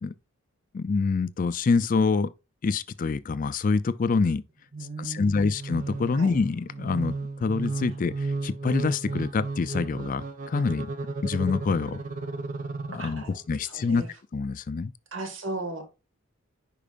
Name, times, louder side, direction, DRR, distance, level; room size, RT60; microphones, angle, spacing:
voice 1, 0.7-2.3 2.6-4.4 5.0-7.1 7.4-8.1 8.4-10.9 11.2-12.0 12.9-14.1 14.3-14.9, left 4 dB, 40° left, 0.4 m, -26 dB
voice 2, 4.7-5.5 6.1-6.3 7.9-8.0 13.0-13.4 13.6-14.1 15.1-15.9, right 2 dB, 65° right, 1.9 m, -36 dB
sound 1, 5.5-13.5, right 3 dB, 40° right, 0.7 m, -34 dB
10.0 x 4.7 x 2.4 m
head